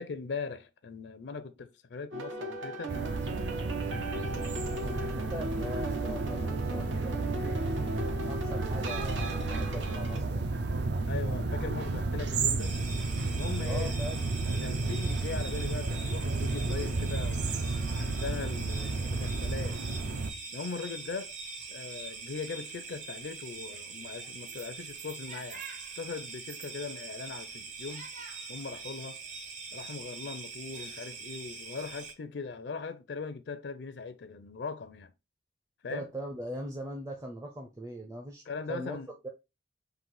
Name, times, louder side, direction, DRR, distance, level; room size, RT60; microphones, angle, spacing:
voice 1, 0.0-2.9 11.1-12.7 13.2-13.9 14.6-17.5 17.9-19.8 20.5-21.3 21.7-25.6 26.0-28.1 28.5-29.2 29.7-35.1 35.8-36.1 38.5-39.1, left 4 dB, 65° left, 0.5 m, -40 dB
sound 1, 2.1-10.2, right 2 dB, 90° right, 1.2 m, -37 dB
sound 2, 2.9-20.3, right 3 dB, 65° right, 0.5 m, -32 dB
voice 2, 4.8-7.5 8.1-10.5 13.6-14.2 35.9-38.4 38.7-39.0 39.2-39.3, equal, 15° right, 0.5 m, -40 dB
sound 3, 12.6-32.1, right 4 dB, 45° right, 0.8 m, -43 dB
3.9 x 2.5 x 4.7 m
head